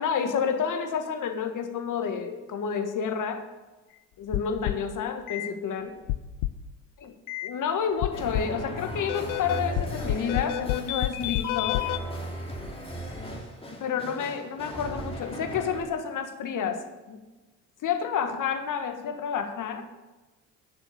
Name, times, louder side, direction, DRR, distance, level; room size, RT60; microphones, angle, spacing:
voice 1, 0.0-3.5 4.2-6.0 7.0-7.1 7.4-11.8 13.8-17.2 17.8-19.8, left 7 dB, 55° left, 6 dB, 1.6 m, -30 dB
sound 1, 4.3-4.9 5.3-5.5 6.1-6.7 7.3-7.5 8.0-8.6 9.1-12.0, left 15 dB, 70° left, 0.6 m, -29 dB
sound 2, 8.1-15.8, right 1 dB, 15° left, 2.6 m, -37 dB
10.5 x 6.2 x 6.8 m, 1.1 s
hypercardioid pair, 55°, 38 cm